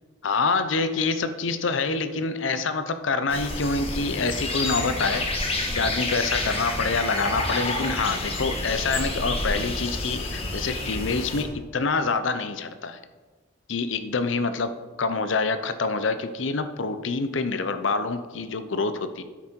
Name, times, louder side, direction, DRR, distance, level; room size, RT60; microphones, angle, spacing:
voice 1, 0.2-5.4 5.7-13.0 13.7-19.2, left 4 dB, 75° left, 11 dB, 0.7 m, -26 dB
sound 1, 3.3-11.4, left 2 dB, 30° left, 1.4 m, -29 dB
10.0 x 8.1 x 4.5 m, 1.3 s
head